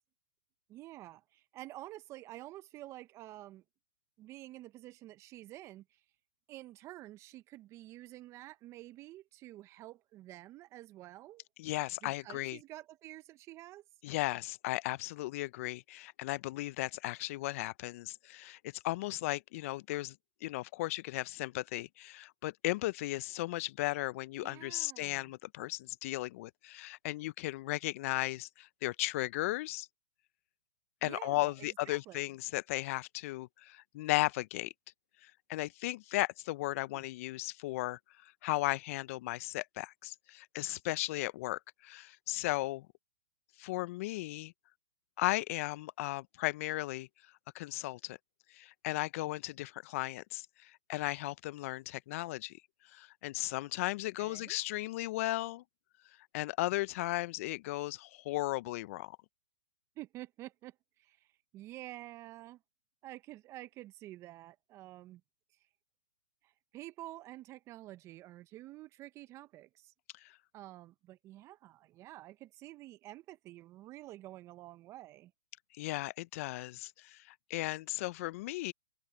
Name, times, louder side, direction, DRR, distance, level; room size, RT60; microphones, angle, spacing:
voice 1, 0.7-3.6 4.2-6.0 6.5-11.4 12.0-13.8 24.4-25.3 31.0-32.3 36.9-37.0 54.2-54.6 60.0-61.3 61.5-62.6 63.0-65.2 66.4-69.9 70.5-75.3, right 16 dB, 30° right, 1.2 m, -49 dB
voice 2, 11.6-12.6 14.0-18.6 18.8-20.1 20.4-29.9 31.0-34.7 35.2-42.9 43.6-44.5 45.2-47.1 47.5-48.2 48.5-52.5 52.9-55.6 56.3-59.2 70.2-70.3 75.7-78.7, left 18 dB, 50° left, 1.0 m, -36 dB
open air
hypercardioid pair, 125°, 10 cm